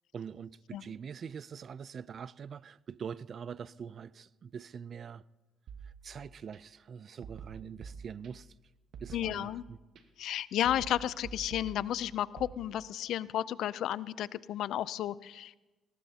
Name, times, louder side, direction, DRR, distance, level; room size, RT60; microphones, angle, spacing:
voice 1, 0.1-5.2 5.8-8.5 9.0-9.8, right 7 dB, 55° right, 0.4 m, -44 dB
sound 1, 5.7-6.6 7.2-8.6 8.9-10.0 10.7-12.5, right 6 dB, 70° right, 1.2 m, -48 dB
voice 2, 9.1-9.6 10.2-15.5, left 11 dB, 80° left, 0.4 m, -33 dB
20.5 x 18.5 x 2.8 m
cardioid pair, 90°, 0 cm